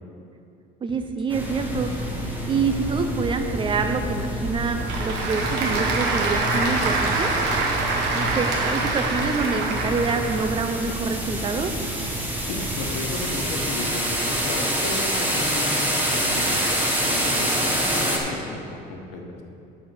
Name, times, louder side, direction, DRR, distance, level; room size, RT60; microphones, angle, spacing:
voice 1, 0.8-1.9 2.5-7.3 8.1-11.7, right 4 dB, 30° right, 7 dB, 0.6 m, -26 dB
sound 1, 0.9-1.8 2.1-2.4 2.7-3.0 3.3-3.6 3.9-6.0 6.3-6.6 6.9-7.2 7.5-7.8 8.1-8.4 8.7-10.4, left 1 dB, 45° left, 1.4 m, -45 dB
sound 2, 1.3-18.2, equal, 10° right, 1.4 m, -27 dB
Applause / Crowd, 4.3-10.7, right 3 dB, 80° right, 1.6 m, -25 dB
voice 2, 12.4-19.4, left 3 dB, 85° left, 2 dB, 1.3 m, -33 dB
10.5 x 4.3 x 6.9 m, 2.6 s
cardioid pair, 130°, 18 cm